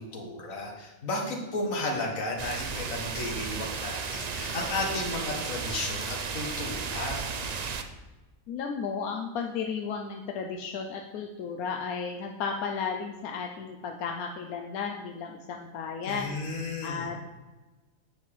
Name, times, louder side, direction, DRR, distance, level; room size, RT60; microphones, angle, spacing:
voice 1, 0.0-7.3 16.0-17.1, left 2 dB, 70° left, 0 dB, 1.8 m, -33 dB
sound 1, 2.4-7.8, right 5 dB, 75° right, 0.3 m, -34 dB
voice 2, 8.5-16.4 16.8-17.3, left 6 dB, 90° left, 3 dB, 1.1 m, -34 dB
8.5 x 5.3 x 4.8 m, 1.2 s
omnidirectional pair, 1.5 m